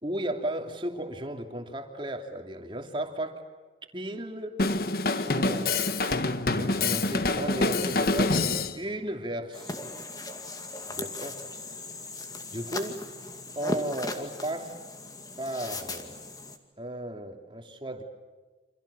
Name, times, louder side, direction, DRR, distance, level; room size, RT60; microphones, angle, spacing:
voice 1, 0.0-3.4 3.9-4.6 5.1-5.9 6.6-10.0 10.9-11.4 12.5-13.0 13.5-14.7 15.4-16.2 16.8-18.0, right 1 dB, 25° right, 4 dB, 3.0 m, -35 dB
Drum kit, 4.6-8.8, left 3 dB, 55° left, 1.4 m, -26 dB
sound 1, 9.5-16.6, left 2 dB, 20° left, 2.2 m, -38 dB
29.0 x 27.0 x 7.2 m, 1.3 s
head